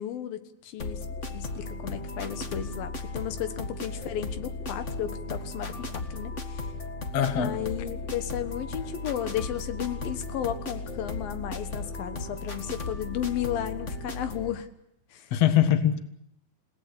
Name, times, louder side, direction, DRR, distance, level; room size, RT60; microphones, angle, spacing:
voice 1, 0.0-6.6 7.4-14.7 15.1-15.3, left 11 dB, 80° left, 9 dB, 3.2 m, -34 dB
sound 1, 0.8-14.5, left 2 dB, 35° left, 1.2 m, -36 dB
voice 2, 7.1-7.6 15.3-16.0, left 10 dB, 50° left, 8 dB, 2.4 m, -22 dB
30.0 x 18.5 x 8.4 m, 0.78 s
omnidirectional pair, 4.1 m